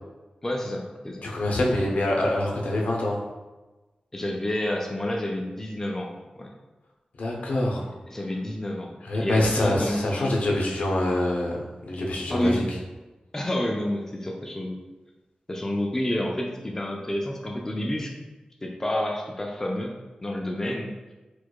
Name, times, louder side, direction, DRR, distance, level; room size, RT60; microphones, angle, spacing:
voice 1, 0.4-1.6 4.1-6.5 8.1-10.3 12.3-12.6 13.3-14.8 15.5-18.1 18.6-19.9 20.2-21.1, left 1 dB, 15° left, 0 dB, 0.3 m, -29 dB
voice 2, 1.2-3.2 7.2-7.9 9.0-11.6 11.9-12.6, left 1 dB, 75° left, -1 dB, 0.6 m, -25 dB
4.5 x 2.2 x 2.3 m, 1.1 s
wide cardioid pair, 120°, 3 cm